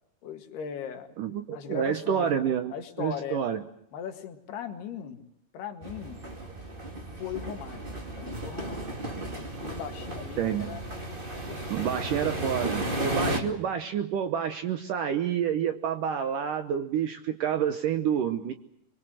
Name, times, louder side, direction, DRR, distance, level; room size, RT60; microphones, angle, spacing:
voice 1, 0.2-1.1 1.5-3.4 3.9-5.2 5.5-6.2 7.2-7.9 8.2-8.8 9.6-10.8 11.5-12.3 13.2-13.5, left 7 dB, 70° left, 6 dB, 3.9 m, -39 dB
voice 2, 1.2-3.6 10.4-10.7 11.7-18.5, right 8 dB, 70° right, 9 dB, 2.1 m, -28 dB
sound 1, 5.8-13.4, right 1 dB, 20° right, 1.6 m, -34 dB
24.5 x 22.5 x 7.7 m, 0.76 s
omnidirectional pair, 4.9 m